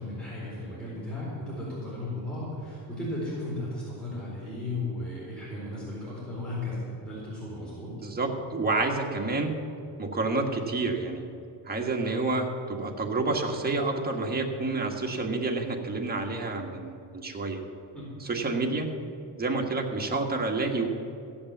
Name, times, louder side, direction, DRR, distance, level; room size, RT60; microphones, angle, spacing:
voice 1, 0.0-7.9 17.9-18.0, left 2 dB, ahead, -8 dB, 4.2 m, -35 dB
voice 2, 8.0-9.5 10.0-11.3 11.6-17.6 18.2-18.9 19.4-20.9, right 3 dB, 20° right, 1 dB, 1.5 m, -29 dB
15.0 x 8.7 x 7.3 m, 2.6 s
cardioid pair, 130°, 48 cm